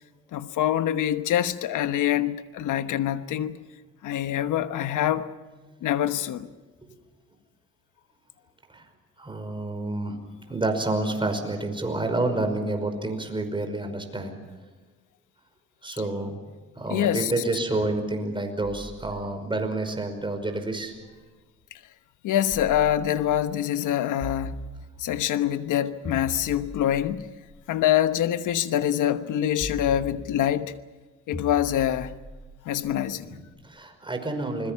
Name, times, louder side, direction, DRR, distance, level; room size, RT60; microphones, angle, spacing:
voice 1, 0.3-3.6 4.0-5.3 5.8-6.5 16.9-17.3 22.2-24.6 25.0-27.3 27.7-30.7 31.3-32.1 32.6-33.4, left 11 dB, 80° left, 1.2 m, -25 dB
voice 2, 9.2-10.2 10.5-14.4 15.8-16.4 16.8-20.9 29.7-29.9 33.2-34.7, right 2 dB, 15° right, 5.4 m, -29 dB
sound 1, 18.6-21.4 22.5-23.5 24.2-25.3 26.0-28.3 29.6-30.7 31.3-33.5, left 1 dB, 20° left, 5.8 m, -42 dB
29.0 x 21.0 x 5.9 m
cardioid pair, 90°, 30 cm